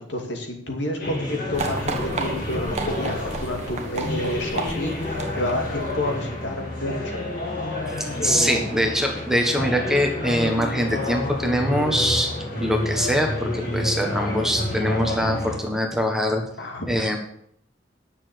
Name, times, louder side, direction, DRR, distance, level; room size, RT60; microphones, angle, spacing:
voice 1, 0.0-7.1 8.2-8.7 16.6-17.2, left 1 dB, 70° left, 2 dB, 2.5 m, -30 dB
sound 1, 1.0-15.6, left 1 dB, 50° left, 3.2 m, -29 dB
sound 2, 1.5-6.3, right 3 dB, 35° right, 1.2 m, -32 dB
voice 2, 7.9-12.3 12.6-16.4 16.9-17.2, equal, ahead, 2 dB, 1.4 m, -23 dB
10.0 x 6.9 x 8.0 m, 0.67 s
head